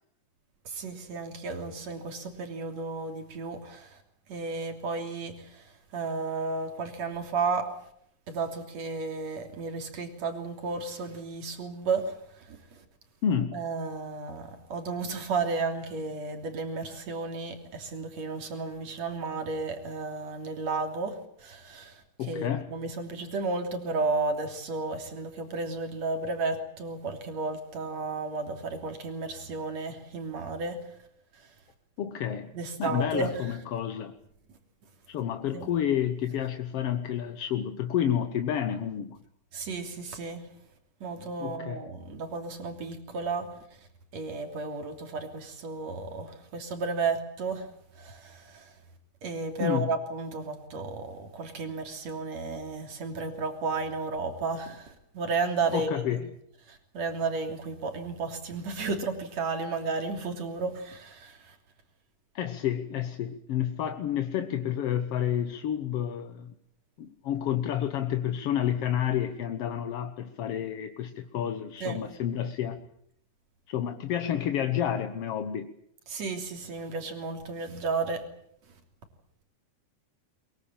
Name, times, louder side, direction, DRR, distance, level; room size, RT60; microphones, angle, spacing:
voice 1, 0.7-4.0 4.3-7.7 8.3-12.8 13.5-22.0 22.3-30.8 32.5-33.3 35.5-35.7 39.5-40.4 41.0-43.5 44.1-47.7 48.0-48.7 49.2-56.2 56.7-61.6 71.8-72.0 76.1-78.2, right 3 dB, 55° right, 5 dB, 4.3 m, -33 dB
voice 2, 13.2-13.6 22.2-22.7 32.0-32.5 32.8-34.1 35.1-39.2 41.4-41.9 49.6-49.9 55.7-56.3 62.4-66.5 67.0-72.8 73.7-75.7, left 9 dB, 60° left, 8 dB, 1.8 m, -30 dB
23.0 x 23.0 x 8.9 m, 0.70 s
omnidirectional pair, 3.7 m